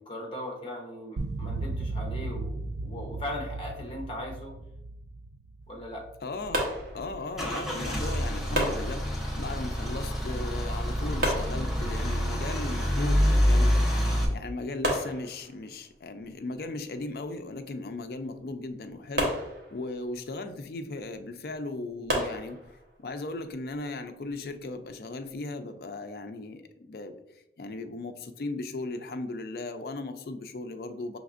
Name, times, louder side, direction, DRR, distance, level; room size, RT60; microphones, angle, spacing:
voice 1, 0.0-4.5 5.7-6.0, left 1 dB, 30° left, 0 dB, 0.9 m, -38 dB
sound 1, 1.2-6.5, right 2 dB, 70° right, 0.3 m, -36 dB
voice 2, 6.2-6.7 6.9-13.9 14.3-19.4 19.7-22.6 23.0-27.2 27.6-31.2, left 2 dB, 55° left, 8 dB, 0.4 m, -37 dB
Car / Engine starting / Idling, 6.4-14.2, equal, ahead, 0.6 m, -27 dB
sound 2, 6.5-7.5 8.5-9.6 11.2-12.2 13.9-14.0 14.3-14.4 14.8-15.9 19.2-20.2 22.1-23.0, equal, 55° right, 0.9 m, -32 dB
5.2 x 3.3 x 2.4 m, 0.84 s
head